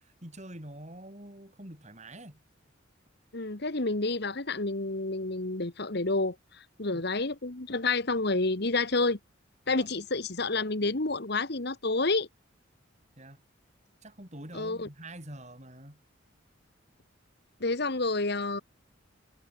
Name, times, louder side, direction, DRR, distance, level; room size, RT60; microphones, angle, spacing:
voice 1, 0.2-2.4 6.9-7.1 9.6-9.9 13.2-13.4 14.0-16.0, right 1 dB, 35° right, 6.5 m, -45 dB
voice 2, 3.3-6.3 6.8-9.2 9.7-12.3 14.5-14.9 17.6-18.6, left 3 dB, 55° left, 1.6 m, -29 dB
head